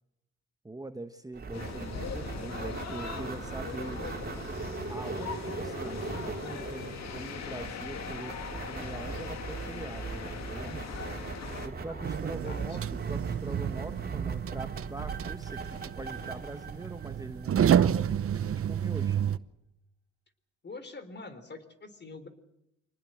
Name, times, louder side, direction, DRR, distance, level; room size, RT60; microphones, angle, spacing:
voice 1, 0.6-4.0 4.9-8.4 8.7-10.9 11.6-19.2, right 2 dB, 10° right, 8 dB, 1.2 m, -43 dB
sound 1, 1.3-17.8, right 4 dB, 30° right, 3.9 m, -40 dB
sound 2, 1.5-11.7, left 6 dB, 60° left, 2.4 m, -40 dB
voice 2, 11.9-12.8 20.6-22.3, left 3 dB, 35° left, 11 dB, 3.8 m, -45 dB
sound 3, 12.0-19.4, right 9 dB, 50° right, 0.9 m, -30 dB
26.0 x 19.5 x 7.8 m, 0.85 s
cardioid pair, 90°, 30 cm